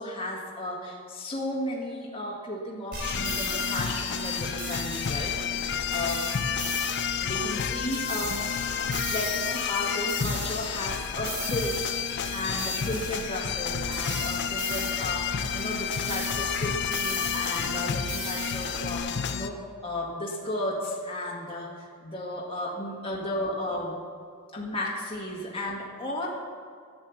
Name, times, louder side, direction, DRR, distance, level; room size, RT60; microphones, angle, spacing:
voice 1, 0.0-6.3 7.2-12.0 12.3-24.0 24.5-26.3, left 1 dB, 25° left, -4 dB, 1.8 m, -34 dB
sound 1, 2.9-19.0, right 2 dB, 45° right, 3.9 m, -38 dB
sound 2, 3.0-19.5, left 7 dB, 50° left, 0.5 m, -30 dB
11.0 x 9.7 x 7.1 m, 2.1 s
head